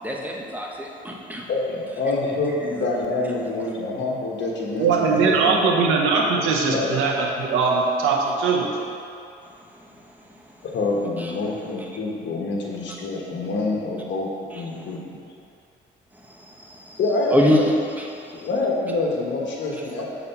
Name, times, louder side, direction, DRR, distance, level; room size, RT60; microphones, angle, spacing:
voice 1, 0.0-1.5 11.2-11.3 14.5-14.6 16.3-17.0 17.3-17.6 18.0-18.5, left 1 dB, 10° right, -1 dB, 1.0 m, -25 dB
voice 2, 1.5-5.9 6.7-7.0 10.7-15.2 17.0-17.7 18.3-20.1, left 2 dB, 65° left, -2 dB, 1.4 m, -26 dB
voice 3, 4.8-8.7, right 4 dB, 90° right, 0 dB, 0.8 m, -20 dB
6.7 x 4.3 x 5.6 m, 2.5 s
cardioid pair, 90°, 20 cm